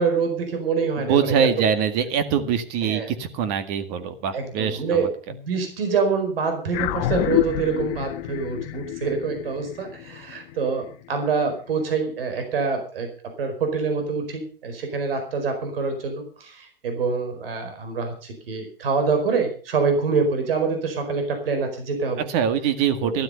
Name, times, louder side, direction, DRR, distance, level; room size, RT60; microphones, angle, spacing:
voice 1, 0.0-1.5 2.8-3.1 4.3-13.1 13.4-22.2 23.0-23.1, right 5 dB, 75° right, 6 dB, 4.8 m, -25 dB
voice 2, 1.0-5.1 22.3-23.2, right 7 dB, 45° right, 10 dB, 2.0 m, -23 dB
sound 1, 6.7-11.3, left 15 dB, 45° left, 1.3 m, -28 dB
13.5 x 12.0 x 5.5 m, 0.40 s
hypercardioid pair, 125°, 29 cm